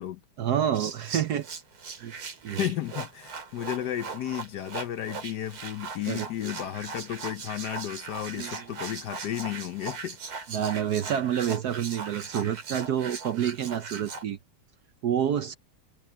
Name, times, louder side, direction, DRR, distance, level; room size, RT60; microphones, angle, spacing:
voice 1, 0.4-1.5 2.0-2.1 2.4-2.6 6.1-6.3 8.4-8.6 10.5-14.4 15.0-15.6, right 9 dB, 65° right, 1.1 m, -28 dB
sound 1, 0.7-14.2, right 4 dB, 85° right, 3.6 m, -39 dB
voice 2, 2.6-10.2, left 11 dB, 65° left, 1.1 m, -33 dB
omnidirectional pair, 2.3 m